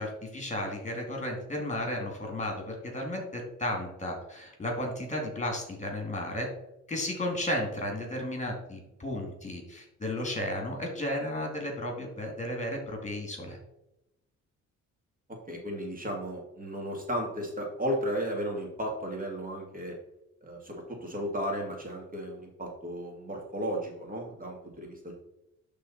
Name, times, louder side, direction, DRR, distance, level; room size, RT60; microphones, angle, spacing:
voice 1, 0.0-6.5 6.9-13.6, left 1 dB, 25° left, 2 dB, 2.6 m, -34 dB
voice 2, 15.5-19.9 20.4-25.1, equal, 30° right, 0 dB, 2.3 m, -34 dB
11.5 x 3.9 x 4.3 m, 0.86 s
cardioid pair, 90°, 30 cm